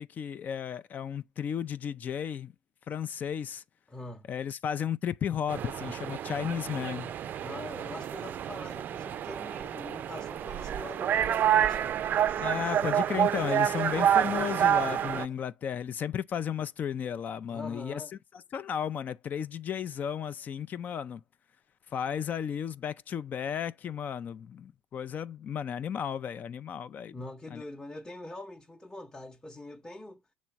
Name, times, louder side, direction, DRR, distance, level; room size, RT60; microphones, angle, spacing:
voice 1, 0.0-2.5 2.9-3.6 4.3-7.1 12.4-18.0 18.5-21.2 21.9-27.1 27.5-27.6, left 8 dB, 45° left, 0.4 m, -34 dB
voice 2, 3.9-4.3 7.4-12.0 17.5-18.1 27.1-30.2, left 2 dB, 15° left, 0.8 m, -43 dB
sound 1, 5.5-15.2, right 10 dB, 50° right, 0.4 m, -28 dB
7.4 x 3.1 x 4.5 m
hypercardioid pair, 75°, 4 cm